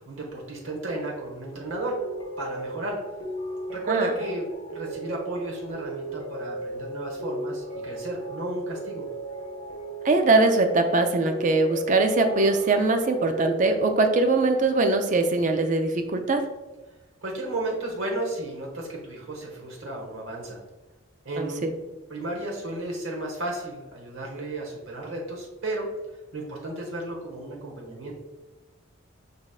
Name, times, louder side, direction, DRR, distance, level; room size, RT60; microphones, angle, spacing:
voice 1, 0.0-2.0 2.4-3.0 3.7-9.0 17.2-20.6 21.2-21.6 22.1-25.9 26.3-28.1, right 2 dB, 85° right, -1 dB, 1.0 m, -33 dB
sound 1, 1.5-13.6, right 2 dB, 30° left, 1.5 m, -36 dB
voice 2, 10.0-16.4 21.4-21.7, right 3 dB, 40° right, 6 dB, 0.4 m, -22 dB
4.9 x 4.0 x 2.4 m, 1.1 s
head